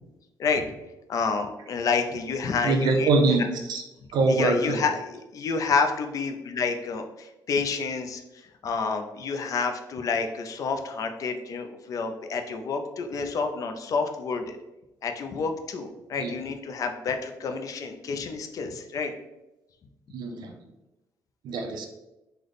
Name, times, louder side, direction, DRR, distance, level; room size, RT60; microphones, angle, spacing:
voice 1, 0.4-0.7 1.1-3.1 4.3-8.2 8.6-14.6 15.0-19.1, left 4 dB, 50° left, 6 dB, 0.4 m, -29 dB
voice 2, 2.6-3.4 3.7-3.8 4.1-4.8 16.2-16.3 20.1-20.6 21.4-21.9, right 3 dB, 70° right, 3 dB, 0.5 m, -23 dB
3.3 x 2.1 x 3.8 m, 0.98 s
cardioid pair, 135°, 8 cm